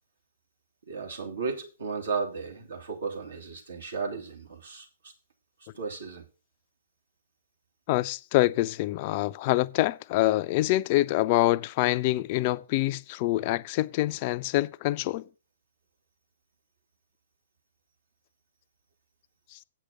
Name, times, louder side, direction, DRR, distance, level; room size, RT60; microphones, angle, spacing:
voice 1, 0.9-5.1 5.7-6.2, right 5 dB, 75° right, 3.0 m, -34 dB
voice 2, 7.9-15.2 19.5-19.6, left 17 dB, 40° left, 0.4 m, -25 dB
8.4 x 6.4 x 6.1 m
figure-of-eight pair, 120°, 0 cm